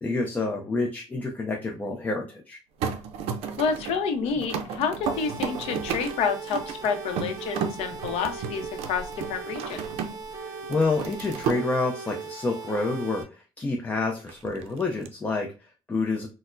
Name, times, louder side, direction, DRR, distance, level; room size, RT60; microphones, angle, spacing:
voice 1, 0.0-2.6 10.5-16.3, left 3 dB, 15° left, 2 dB, 0.4 m, -28 dB
sound 1, 2.8-10.3 10.6-11.6 14.3-15.1, right 6 dB, 90° right, 0.4 m, -33 dB
voice 2, 3.6-10.0, left 6 dB, 90° left, 7 dB, 0.6 m, -29 dB
sound 2, 5.0-13.2, right 4 dB, 35° right, 0.7 m, -39 dB
4.2 x 2.0 x 2.5 m, 0.33 s
cardioid pair, 140°, 10 cm